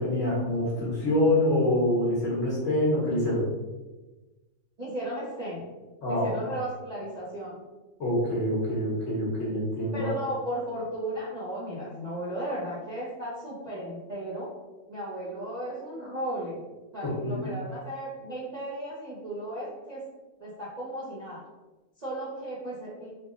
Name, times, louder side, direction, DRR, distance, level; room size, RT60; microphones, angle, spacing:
voice 1, 0.0-3.5 6.0-6.3 8.0-10.1 17.0-17.5, left 1 dB, 60° left, -6 dB, 1.5 m, -26 dB
voice 2, 4.8-5.7 6.1-7.6 9.9-14.5 14.9-16.6 16.9-20.0 20.4-21.4 22.0-23.1, right 1 dB, 40° right, -7 dB, 0.7 m, -35 dB
3.4 x 2.2 x 3.7 m, 1.2 s
omnidirectional pair, 1.5 m